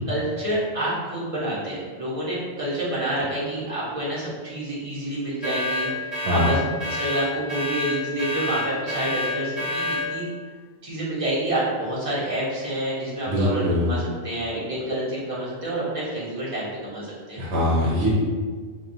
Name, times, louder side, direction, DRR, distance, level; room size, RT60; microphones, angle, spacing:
voice 1, 0.1-10.2 10.8-17.4, right 1 dB, 30° right, -8 dB, 1.2 m, -28 dB
sound 1, 5.4-10.1, left 2 dB, 20° left, 1.2 m, -28 dB
voice 2, 13.3-13.9 17.4-18.1, left 1 dB, 70° right, -6 dB, 1.1 m, -22 dB
5.5 x 2.3 x 2.7 m, 1.5 s
omnidirectional pair, 1.1 m